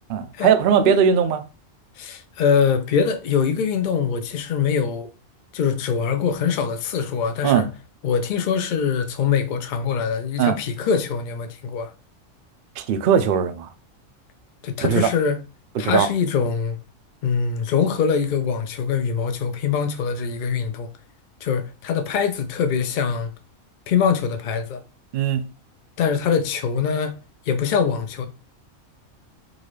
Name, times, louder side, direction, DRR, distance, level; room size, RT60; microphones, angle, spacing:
voice 1, 0.1-1.4 7.4-7.6 10.4-10.6 12.8-13.7 14.8-15.1 15.8-16.1 25.1-25.4, right 7 dB, 65° right, 0.5 m, -19 dB
voice 2, 2.0-5.1 5.5-7.7 8.0-11.9 14.6-15.4 15.8-16.8 17.2-20.9 21.4-23.3 23.9-24.8 26.0-27.2 27.5-28.3, left 6 dB, 60° left, 0.5 m, -23 dB
3.9 x 2.4 x 3.2 m
omnidirectional pair, 1.4 m